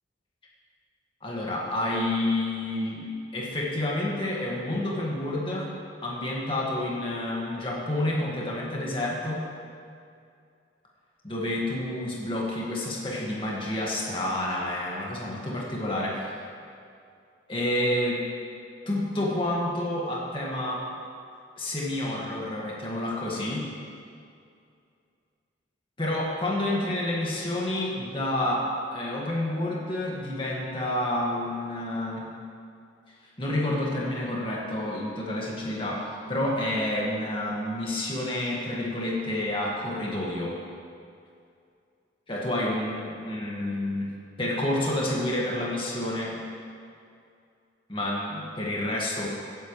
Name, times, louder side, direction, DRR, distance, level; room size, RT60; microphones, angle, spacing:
voice 1, 1.2-5.7 6.0-9.4 11.2-16.3 17.5-18.2 18.9-20.8 21.6-23.7 26.0-32.2 33.4-40.6 42.3-44.1 44.4-46.4 47.9-49.3, left 1 dB, 25° left, -4 dB, 2.0 m, -29 dB
16.5 x 10.0 x 3.3 m, 2.4 s
head